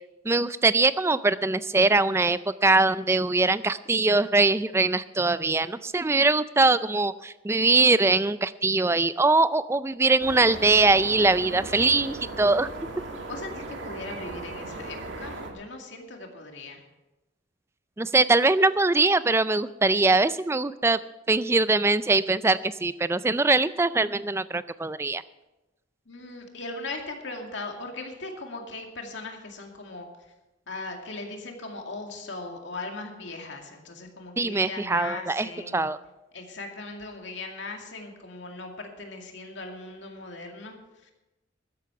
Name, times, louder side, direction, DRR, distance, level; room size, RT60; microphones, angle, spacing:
voice 1, 0.2-12.7 18.0-21.0 21.3-25.2 34.4-36.0, right 3 dB, 15° right, 15 dB, 0.3 m, -22 dB
sound 1, 10.2-15.5, right 2 dB, 70° right, 2.0 m, -38 dB
voice 2, 13.3-16.8 26.1-30.1 30.7-35.9 36.3-40.8 41.0-41.1, left 2 dB, 65° left, 2 dB, 2.2 m, -39 dB
13.0 x 10.5 x 5.8 m, 1.0 s
head